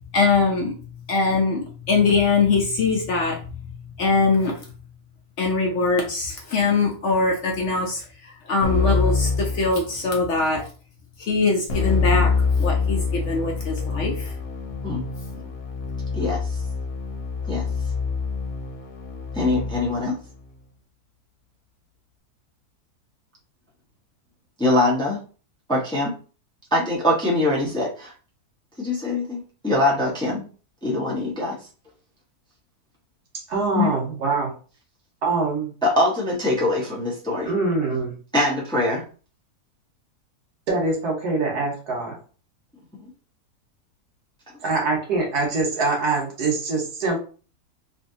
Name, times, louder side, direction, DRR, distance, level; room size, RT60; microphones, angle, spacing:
voice 1, 0.1-0.7 1.1-3.6 4.0-4.5 5.4-10.6 11.2-12.3 12.6-14.3, left 3 dB, 60° left, 0 dB, 0.9 m, -22 dB
Keyboard (musical), 8.6-10.3 11.7-20.1, left 4 dB, 80° left, 1.3 m, -25 dB
voice 2, 16.1-16.6 17.5-17.6 19.3-20.2 24.6-25.2 25.7-26.1 26.7-28.1 28.8-30.5 30.8-31.6 33.7-33.9 35.8-37.5 38.3-39.0, left 2 dB, 5° left, -4 dB, 0.6 m, -23 dB
voice 3, 33.5-34.5 35.2-35.7 37.4-38.1 40.7-42.2 44.6-47.2, right 3 dB, 80° right, 0 dB, 1.7 m, -24 dB
3.2 x 2.6 x 2.7 m, 0.38 s
omnidirectional pair, 1.6 m